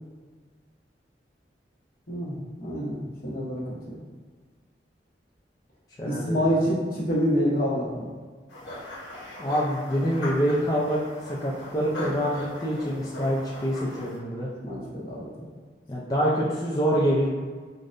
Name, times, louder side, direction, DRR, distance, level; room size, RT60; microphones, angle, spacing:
voice 1, 2.1-3.0 3.2-3.9 6.0-8.1 14.6-15.5, equal, 50° left, -6 dB, 1.0 m, -27 dB
voice 2, 6.0-6.4 9.4-14.5 15.9-17.3, equal, 20° left, -6 dB, 0.4 m, -26 dB
sound 1, 8.5-14.2, left 1 dB, 85° left, 0.9 m, -39 dB
5.0 x 2.1 x 2.5 m, 1.5 s
head